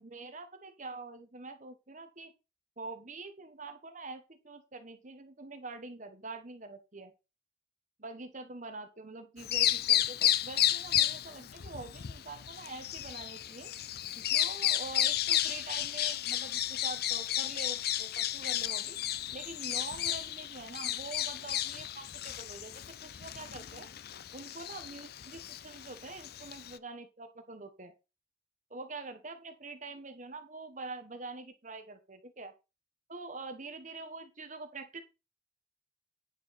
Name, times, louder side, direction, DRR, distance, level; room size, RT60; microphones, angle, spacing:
voice 1, 0.0-2.3 2.8-7.1 8.0-13.7 14.1-19.0 19.3-23.9 24.3-27.9 28.7-32.5 33.1-35.0, right 3 dB, 40° right, 8 dB, 1.2 m, -45 dB
Bird vocalization bird call bird song, 9.4-26.8, left 12 dB, 50° left, 0.4 m, -32 dB
9.9 x 4.7 x 5.7 m, 0.28 s
head